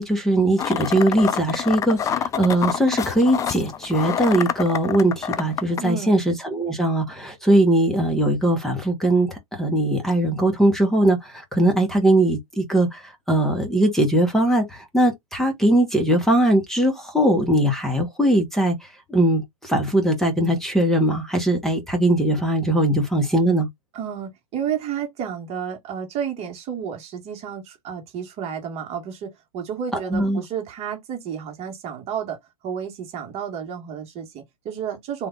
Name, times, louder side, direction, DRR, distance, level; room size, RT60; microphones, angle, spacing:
voice 1, 0.0-23.7 29.9-30.4, right 1 dB, ahead, 1.3 m, -20 dB
sound 1, 0.6-5.8, left 8 dB, 20° left, 0.4 m, -27 dB
voice 2, 5.8-6.2 23.9-32.4 32.6-35.3, right 8 dB, 35° right, 1.5 m, -31 dB
3.4 x 2.8 x 3.7 m
hypercardioid pair, 110°, 18 cm